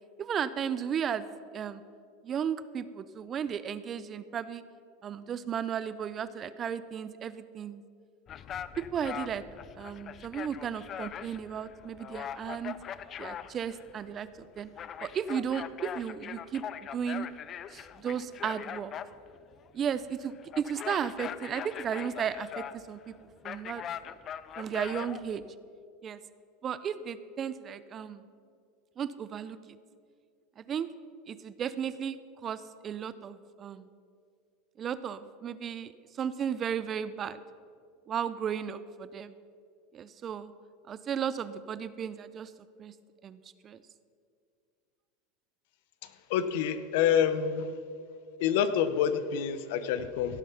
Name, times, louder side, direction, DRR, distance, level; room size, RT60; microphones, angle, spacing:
voice 1, 0.2-1.3 1.5-1.8 2.2-4.6 5.0-7.8 8.8-9.4 9.8-12.8 13.2-14.7 15.0-16.6 16.9-17.3 17.7-18.9 19.7-23.1 23.4-24.2 24.6-25.4 26.0-26.2 26.6-28.2 29.0-29.8 30.6-30.9 31.3-32.2 32.4-33.9 34.8-35.9 36.2-37.4 38.1-39.3 39.9-40.5 40.9-42.5 42.8-42.9 43.2-43.4 43.6-43.8, right 8 dB, 30° right, 15 dB, 0.5 m, -34 dB
sound 1, 8.3-25.5, left 9 dB, 35° left, 0.4 m, -42 dB
voice 2, 46.0-47.7 48.4-50.4, left 8 dB, 70° left, 12 dB, 0.8 m, -27 dB
16.5 x 7.4 x 5.7 m, 2.3 s
supercardioid pair, 130°, 0 cm